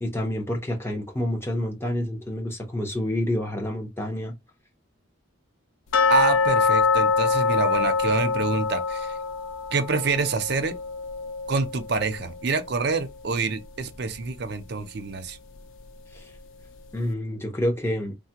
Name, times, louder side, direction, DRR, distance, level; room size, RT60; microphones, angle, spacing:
voice 1, 0.0-4.3 16.1-16.3 16.9-18.2, left 1 dB, 10° left, 0.7 m, -28 dB
sound 1, 5.9-12.8 13.1-13.2 13.7-13.8 14.3-14.4, left 4 dB, 80° left, 0.4 m, -25 dB
voice 2, 6.1-9.2 9.7-10.7 11.5-15.4, right 4 dB, 55° right, 0.5 m, -26 dB
3.3 x 2.1 x 2.8 m
head